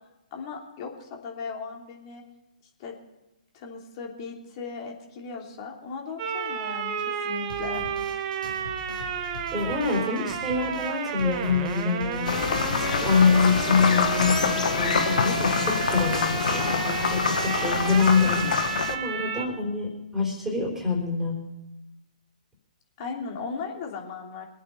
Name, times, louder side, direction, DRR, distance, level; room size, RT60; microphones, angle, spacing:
voice 1, 0.3-2.2 2.8-3.0 3.5-7.9 23.0-24.5, left 5 dB, 40° left, 0 dB, 3.2 m, -37 dB
sound 1, 6.2-19.5, right 8 dB, 35° right, 1.2 m, -31 dB
sound 2, 7.5-14.8, left 4 dB, 85° left, 4.9 m, -42 dB
voice 2, 9.5-12.3 12.8-18.5 18.9-21.4, left 5 dB, 5° right, -1 dB, 3.9 m, -25 dB
sound 3, 12.2-18.9, left 6 dB, 65° left, 1.2 m, -26 dB
22.5 x 8.5 x 5.7 m, 1.0 s
figure-of-eight pair, 130°, 5 cm